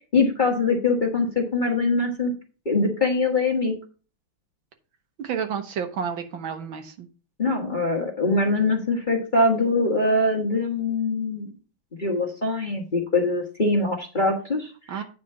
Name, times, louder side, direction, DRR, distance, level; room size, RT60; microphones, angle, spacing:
voice 1, 0.1-2.3 2.6-3.7 7.4-11.5 12.0-15.0, left 2 dB, 25° left, 0 dB, 1.2 m, -23 dB
voice 2, 5.2-7.1 14.9-15.0, right 7 dB, 70° right, 7 dB, 1.7 m, -30 dB
9.4 x 4.2 x 5.5 m, 0.36 s
omnidirectional pair, 2.3 m